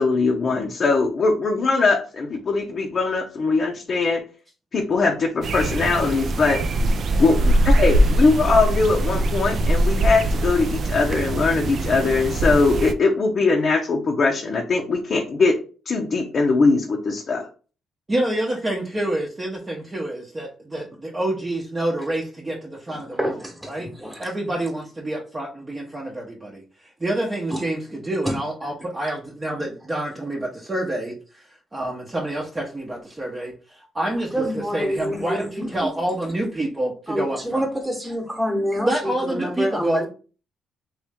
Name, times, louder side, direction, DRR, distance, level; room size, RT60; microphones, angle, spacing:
voice 1, 0.0-4.2 4.7-6.6 7.2-15.6 15.9-17.5, left 3 dB, 45° left, 0.6 m, -21 dB
sound 1, 5.4-12.9, right 1 dB, 55° right, 0.4 m, -22 dB
voice 2, 18.1-23.3 23.7-23.9 24.2-31.4 31.7-37.6 38.8-40.1, right 1 dB, 25° right, 0.8 m, -27 dB
voice 3, 22.9-24.6 27.5-28.0 28.2-28.4 28.6-28.8 34.3-35.9 37.1-40.1, equal, 5° right, 1.1 m, -28 dB
3.1 x 3.0 x 3.5 m
cardioid pair, 90°, 0 cm